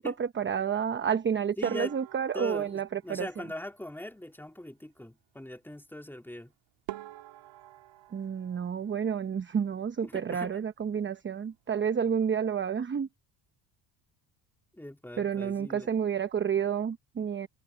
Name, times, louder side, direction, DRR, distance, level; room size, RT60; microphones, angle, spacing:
voice 1, 0.0-3.3 8.1-13.1 15.2-17.5, right 7 dB, 25° right, 0.9 m, -30 dB
voice 2, 1.6-1.9 2.3-6.5 10.0-10.6 14.7-15.9, left 1 dB, 5° left, 3.5 m, -41 dB
sound 1, 1.6-4.1 6.3-6.4 6.9-9.6 9.9-10.7 11.0-11.2 11.5-11.6 12.2-12.5, right 16 dB, 75° right, 1.8 m, -47 dB
cardioid pair, 100°, 45 cm